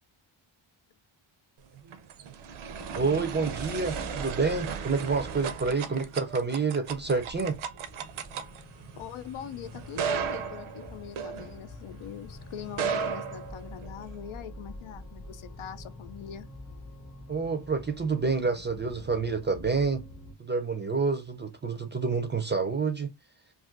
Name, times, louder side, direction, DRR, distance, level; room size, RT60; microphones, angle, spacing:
sound 1, 1.7-12.0 12.6-14.1, right 6 dB, 80° right, 0.6 m, -36 dB
sound 2, 2.7-20.3, left 1 dB, 30° left, 0.8 m, -47 dB
voice 1, 3.0-7.6 17.3-20.0 20.4-23.1, right 4 dB, 25° right, 0.3 m, -28 dB
voice 2, 9.0-16.5, left 9 dB, 85° left, 0.6 m, -42 dB
2.5 x 2.4 x 3.6 m
wide cardioid pair, 175°, 48 cm